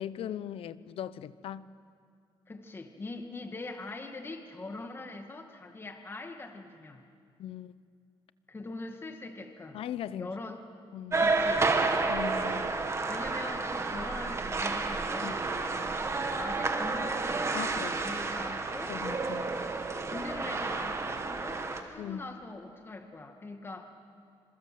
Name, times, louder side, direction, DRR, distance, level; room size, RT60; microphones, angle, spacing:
voice 1, 0.0-1.7 7.4-7.7 9.7-10.3 10.9-11.2 12.1-12.7 15.2-15.4 17.5-18.0 18.9-19.5 22.0-22.3, left 10 dB, 75° left, 15 dB, 0.9 m, -39 dB
voice 2, 2.5-7.0 8.5-9.8 10.2-10.6 11.2-11.7 13.1-16.0 16.4-19.0 19.6-19.8 20.0-23.8, left 2 dB, 25° left, 5 dB, 2.2 m, -42 dB
sound 1, 11.1-21.8, right 3 dB, 30° right, 2.2 m, -30 dB
27.5 x 27.0 x 7.8 m, 2.4 s
cardioid pair, 115°, 10 cm